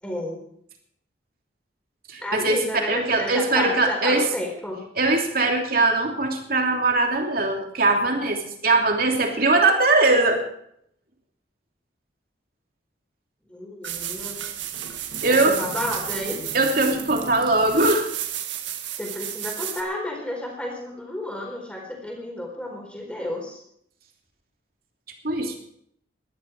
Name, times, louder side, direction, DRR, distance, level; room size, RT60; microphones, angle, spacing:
voice 1, 0.0-0.4 2.2-4.8 13.5-14.4 15.3-16.4 18.9-23.6, left 1 dB, 5° left, 0 dB, 4.5 m, -31 dB
voice 2, 2.1-4.3 5.0-10.4 15.2-15.6 16.5-18.1 25.2-25.6, right 2 dB, 50° right, 2 dB, 2.9 m, -21 dB
sound 1, 13.8-19.8, right 10 dB, 75° right, 1.9 m, -32 dB
18.5 x 12.5 x 4.7 m, 0.69 s
head